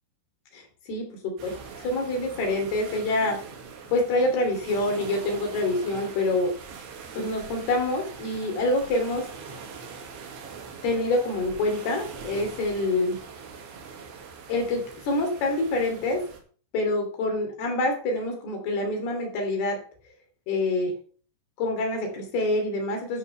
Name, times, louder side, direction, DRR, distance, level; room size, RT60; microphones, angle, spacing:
voice 1, 0.5-1.5 1.8-3.4 3.9-6.5 7.1-9.3 10.8-13.2 14.5-16.3 16.7-19.8 20.5-21.0 21.6-23.2, left 2 dB, 60° left, 3 dB, 4.8 m, -26 dB
sound 1, 1.4-16.4, right 5 dB, 80° right, 4.5 m, -42 dB
14.0 x 9.5 x 3.4 m, 0.43 s
omnidirectional pair, 5.3 m